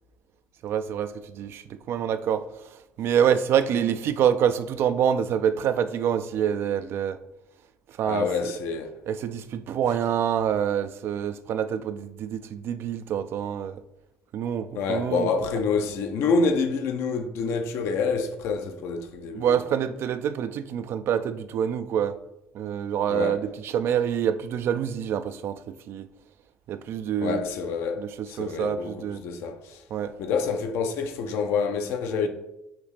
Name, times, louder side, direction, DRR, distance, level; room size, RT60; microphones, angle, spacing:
voice 1, 0.6-7.2 7.9-8.5 9.1-13.8 14.3-15.3 19.3-22.2 22.5-26.1 26.7-27.4 28.0-29.2 29.9-30.1, right 9 dB, 60° right, 0.3 m, -26 dB
voice 2, 8.1-8.9 14.7-19.6 23.1-23.4 27.2-29.0 29.2-29.8 30.2-32.3, left 5 dB, 70° left, 0.6 m, -27 dB
5.8 x 2.8 x 3.2 m
hypercardioid pair, 60°, 5 cm